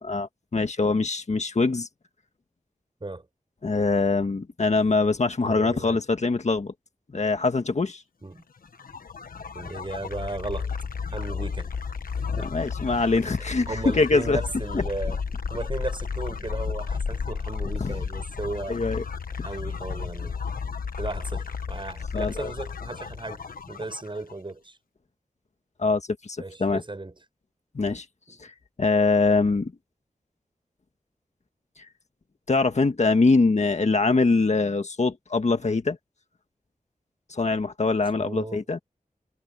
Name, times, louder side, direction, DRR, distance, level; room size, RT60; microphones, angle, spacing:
voice 1, 0.0-1.9 3.6-6.7 7.1-8.0 12.4-14.4 14.7-14.8 17.8-17.9 18.7-19.0 22.1-22.5 25.8-26.8 27.7-28.0 28.4-28.5 28.8-29.7 32.5-36.0 37.3-38.8, left 3 dB, 55° left, 1.7 m, -23 dB
voice 2, 5.4-6.0 8.2-8.4 9.5-10.7 11.1-11.7 12.4-12.5 13.7-15.2 15.5-18.8 19.4-20.4 21.0-24.8 26.4-27.1 28.3-28.4 38.2-38.6, right 2 dB, 35° right, 6.5 m, -35 dB
sound 1, 8.6-24.3, left 5 dB, 85° left, 1.2 m, -33 dB
wide cardioid pair, 85°, 14 cm